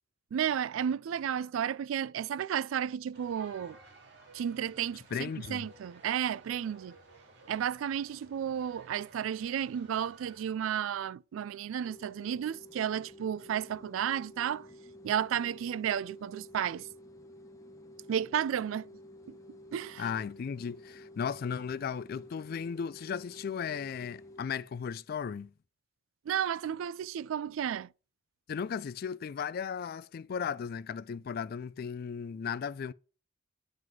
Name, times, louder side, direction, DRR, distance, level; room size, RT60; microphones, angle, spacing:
voice 1, 0.3-3.8 4.3-7.0 7.5-14.7 15.0-16.9 18.1-18.9 19.3-19.4 19.7-20.1 26.3-27.9, right 9 dB, 85° right, 0.3 m, -33 dB
sound 1, 3.1-10.4, right 2 dB, 60° right, 2.2 m, -56 dB
voice 2, 5.1-5.7 20.0-25.5 28.5-32.9, left 7 dB, 50° left, 0.3 m, -36 dB
sound 2, 11.8-24.5, left 1 dB, 15° left, 1.0 m, -52 dB
9.2 x 3.9 x 4.6 m
head